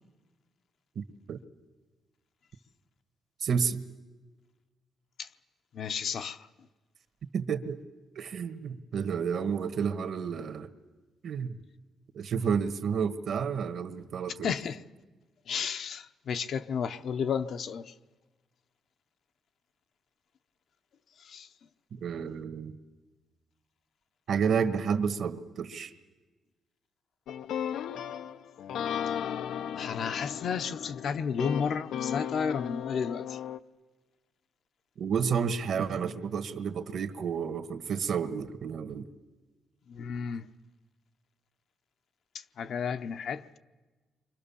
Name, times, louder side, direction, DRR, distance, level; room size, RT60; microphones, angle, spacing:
voice 1, 0.9-1.4 3.4-3.8 7.3-7.8 8.1-10.7 11.2-11.5 12.1-14.5 22.0-22.7 24.3-25.9 35.0-39.1, right 6 dB, 50° right, 1.4 m, -30 dB
voice 2, 5.7-6.5 14.4-14.8 15.5-17.9 21.2-21.5 29.8-33.4 39.9-40.5 42.6-43.4, left 6 dB, 50° left, 0.8 m, -32 dB
sound 1, 27.3-33.6, left 9 dB, 80° left, 0.8 m, -35 dB
29.5 x 24.5 x 7.1 m
cardioid pair, 165°, 0 cm